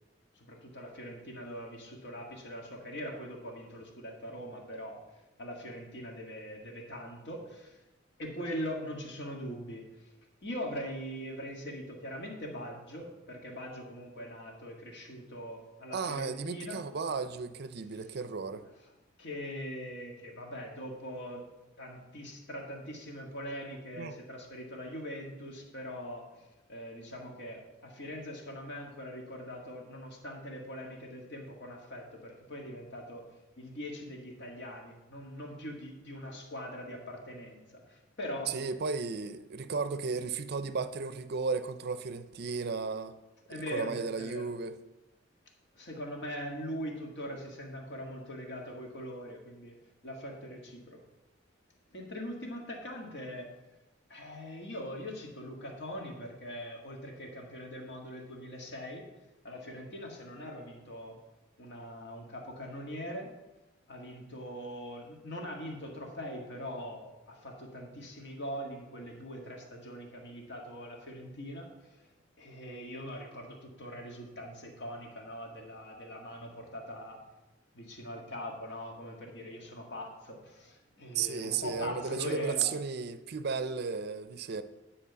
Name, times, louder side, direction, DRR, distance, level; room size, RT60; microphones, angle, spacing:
voice 1, 0.4-5.0 5.4-7.8 8.2-10.1 10.4-16.8 19.2-21.5 21.8-33.2 33.6-38.6 43.5-44.5 45.7-49.7 50.0-51.0 51.9-53.5 54.1-59.1 59.4-61.2 61.6-63.3 63.9-72.1 72.4-77.2 77.7-82.7, equal, 60° left, 1.8 m, -42 dB
voice 2, 15.9-18.6 24.0-24.2 38.5-43.2 43.5-44.8 81.1-84.6, right 5 dB, 55° right, 0.5 m, -34 dB
10.0 x 4.4 x 6.8 m
head